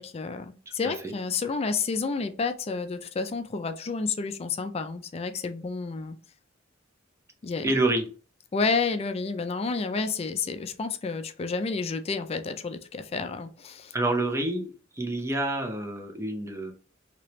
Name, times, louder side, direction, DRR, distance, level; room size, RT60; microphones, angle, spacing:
voice 1, 0.0-6.2 7.4-7.7 8.5-13.9, left 4 dB, 30° left, 8 dB, 0.3 m, -30 dB
voice 2, 0.8-1.1 7.6-8.1 13.9-16.7, right 2 dB, 15° right, 4 dB, 0.6 m, -28 dB
3.1 x 2.9 x 3.0 m, 0.38 s
head